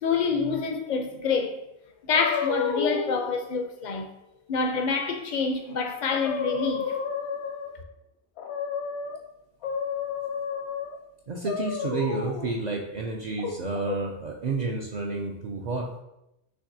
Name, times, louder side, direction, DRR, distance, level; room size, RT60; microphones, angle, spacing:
voice 1, 0.0-1.6 2.0-4.1 4.5-6.8, left 5 dB, 55° left, 0.5 m, -27 dB
sound 1, 2.1-3.2 5.7-5.8 6.1-7.8 8.4-9.2 9.6-10.9 11.4-12.5 13.4-14.0, left 6 dB, 75° left, 0.9 m, -31 dB
voice 2, 11.3-15.9, right 3 dB, 60° right, 0.5 m, -30 dB
5.9 x 3.2 x 2.6 m
omnidirectional pair, 1.1 m